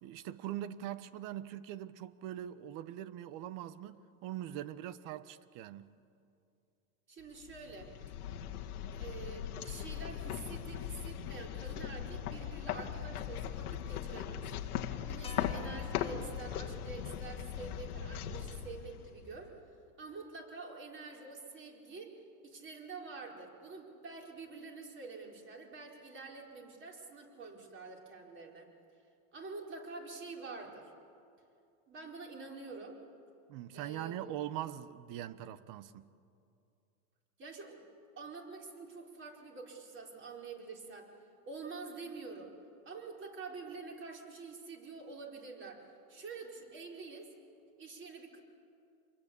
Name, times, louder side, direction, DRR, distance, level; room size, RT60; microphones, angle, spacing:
voice 1, 0.0-5.9 33.5-36.1, right 12 dB, 45° right, 1.2 m, -42 dB
voice 2, 7.1-7.9 8.9-14.5 15.1-19.5 20.0-22.2 22.4-28.7 29.3-30.9 31.9-33.0 33.7-34.2 37.4-37.8 38.2-41.1 41.4-42.5 42.8-47.3 47.8-48.4, right 4 dB, 25° right, 4.5 m, -47 dB
sound 1, 7.4-19.5, left 9 dB, 90° left, 1.8 m, -39 dB
sound 2, 15.2-19.6, left 6 dB, 15° left, 1.8 m, -55 dB
26.5 x 22.0 x 8.5 m
supercardioid pair, 130°, 43 cm